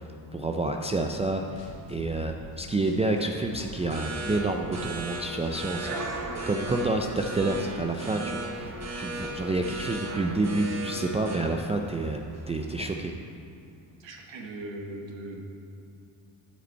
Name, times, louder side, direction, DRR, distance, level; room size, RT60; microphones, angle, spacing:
voice 1, 0.0-6.0 6.5-13.1, right 2 dB, 15° right, 3 dB, 0.4 m, -29 dB
sound 1, 1.1-2.6 2.8-5.1 5.4-5.8 6.0-9.9, left 1 dB, 90° left, 1.2 m, -46 dB
sound 2, 3.2-12.8, right 1 dB, 35° right, 1.1 m, -37 dB
voice 2, 14.0-15.4, right 1 dB, 65° right, 1 dB, 1.3 m, -39 dB
10.0 x 5.1 x 4.4 m, 2.6 s
supercardioid pair, 65°, 48 cm